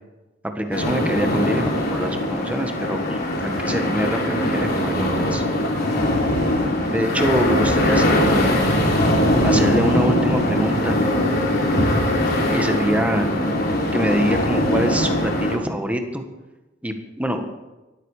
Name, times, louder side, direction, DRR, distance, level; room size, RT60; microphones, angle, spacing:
voice 1, 0.5-5.4 6.9-8.7 9.4-11.0 12.4-13.3 13.9-16.2 16.8-17.5, equal, 5° right, 5 dB, 1.5 m, -25 dB
sound 1, 0.7-15.6, left 1 dB, 55° left, 3.4 m, -21 dB
17.5 x 13.0 x 5.0 m, 1.1 s
head